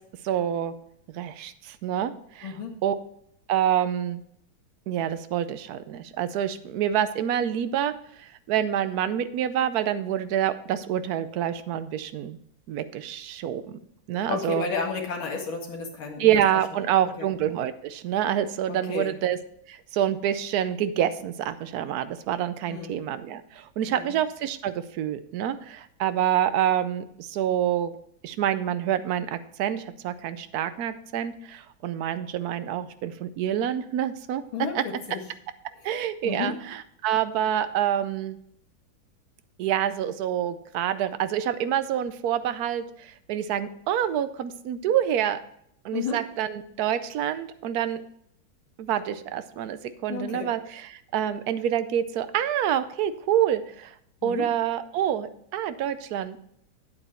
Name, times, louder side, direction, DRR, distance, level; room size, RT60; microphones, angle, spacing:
voice 1, 0.2-0.7 1.1-2.5 2.8-2.9 3.5-4.2 4.9-12.4 12.7-13.8 14.1-14.7 16.2-19.4 19.7-27.9 28.2-34.4 34.7-34.8 35.8-38.4 39.6-45.4 45.8-48.0 48.8-53.9 54.2-56.4, right 10 dB, 70° right, 12 dB, 0.9 m, -27 dB
voice 2, 14.3-16.4 16.8-16.9 17.2-17.3 18.7-19.1 22.7-23.0 23.9-24.1 34.5-35.2 36.2-36.5 45.9-46.2 50.1-50.5 54.2-54.5, left 5 dB, 80° left, 0 dB, 2.6 m, -32 dB
9.0 x 8.3 x 4.3 m, 0.70 s
omnidirectional pair, 2.2 m